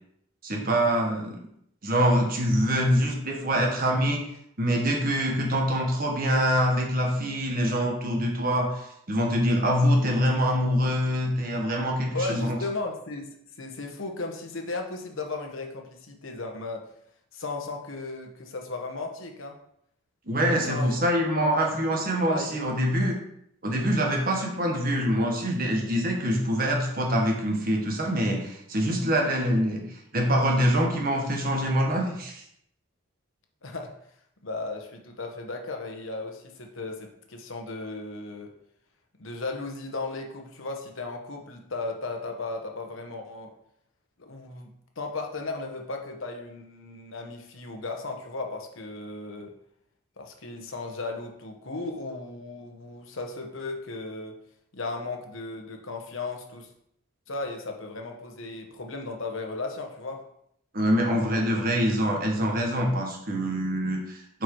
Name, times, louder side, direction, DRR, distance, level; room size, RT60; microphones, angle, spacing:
voice 1, 0.4-1.4 1.8-4.2 4.6-12.6 20.3-23.2 23.6-32.4 60.7-64.4, equal, 45° right, 0 dB, 1.4 m, -25 dB
voice 2, 12.1-13.3 13.6-16.8 17.3-19.6 20.5-20.9 21.4-22.5 33.6-33.9 34.4-38.5 39.2-43.5 44.2-49.5 50.2-54.4 54.7-56.7 57.3-60.2, left 3 dB, 75° left, 3 dB, 1.2 m, -35 dB
6.7 x 4.6 x 4.7 m, 0.73 s
head